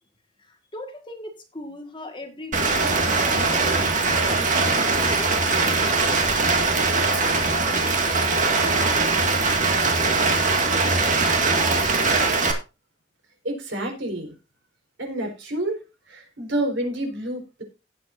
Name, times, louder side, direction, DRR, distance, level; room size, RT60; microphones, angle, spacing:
voice 1, 0.7-5.4, left 1 dB, 25° left, 5 dB, 1.8 m, -39 dB
Rain, 2.5-12.5, right 3 dB, 40° right, 2.1 m, -21 dB
voice 2, 13.4-14.3 15.0-15.8 16.1-17.6, right 1 dB, 70° right, 3 dB, 4.6 m, -28 dB
17.5 x 7.7 x 2.7 m, 0.28 s
head